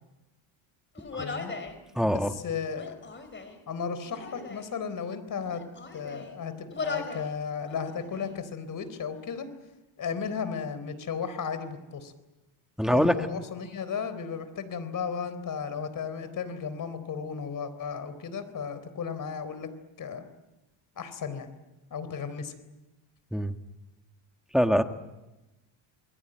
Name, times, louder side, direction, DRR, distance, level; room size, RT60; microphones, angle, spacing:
Human voice, 1.0-1.8 2.7-3.6 4.0-4.7 5.4-6.3 6.7-7.3 7.7-8.3, left 4 dB, 25° left, 4.2 m, -38 dB
voice 1, 1.2-1.5 2.0-3.0 3.7-5.6 5.9-9.5 10.0-12.1 12.9-19.7 20.0-20.3 21.0-21.5 21.9-22.5, left 6 dB, 40° left, 12 dB, 4.1 m, -34 dB
voice 2, 1.9-2.3 12.8-13.1 23.3-23.5 24.5-24.8, equal, ahead, 6 dB, 1.7 m, -23 dB
28.5 x 21.5 x 9.1 m, 1.0 s
cardioid pair, 130°, 48 cm